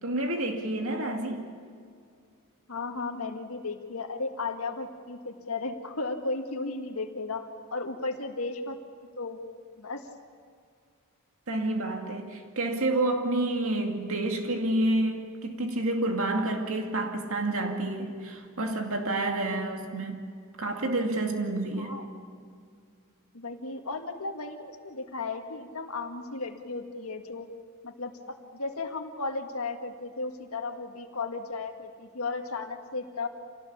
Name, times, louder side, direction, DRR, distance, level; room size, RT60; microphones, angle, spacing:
voice 1, 0.0-1.4 11.5-20.2 20.6-21.9, right 2 dB, 70° right, 2.4 m, -29 dB
voice 2, 2.7-8.8 9.2-9.4 9.8-10.0 21.8-22.1 23.3-27.5 27.8-33.3, left 3 dB, 75° left, 1.9 m, -35 dB
27.0 x 18.5 x 8.7 m
head